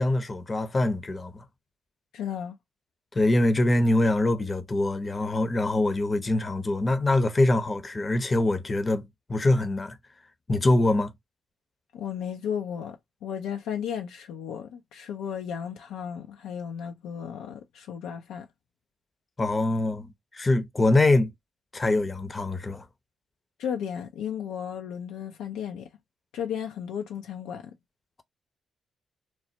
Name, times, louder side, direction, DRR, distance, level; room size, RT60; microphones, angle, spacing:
voice 1, 0.0-1.4 3.1-10.0 10.5-11.1 19.4-21.3 21.7-22.8, left 2 dB, 35° left, 0.6 m, -24 dB
voice 2, 2.1-2.6 11.9-18.5 23.6-25.9 26.3-27.7, left 8 dB, 75° left, 0.3 m, -34 dB
3.1 x 2.0 x 2.7 m
hypercardioid pair, 40°, 0 cm